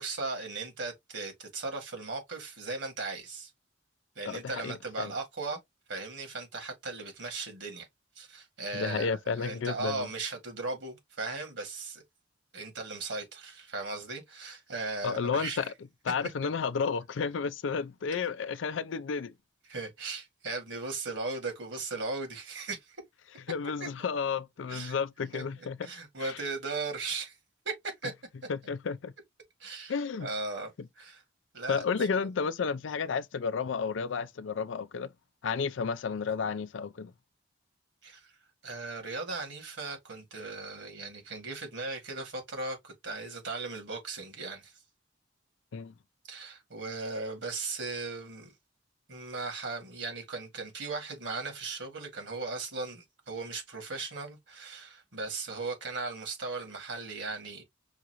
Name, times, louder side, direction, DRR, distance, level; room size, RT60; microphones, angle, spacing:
voice 1, 0.0-3.5 4.2-5.6 5.9-7.9 8.2-12.0 12.5-15.7 19.7-23.0 23.8-23.9 24.7-25.0 25.3-27.4 27.6-28.1 29.6-29.9 30.2-31.2 31.5-32.1 38.0-38.3 38.6-44.7 46.3-48.5 49.1-57.6, right 3 dB, 75° right, 2.1 m, -37 dB
voice 2, 4.3-5.1 8.7-10.1 15.0-15.7 16.0-19.3 23.5-25.8 26.2-26.4 28.5-29.1 29.9-30.3 31.7-35.1 35.4-37.1 45.7-45.9, left 5 dB, 75° left, 0.4 m, -32 dB
5.7 x 2.5 x 2.9 m
head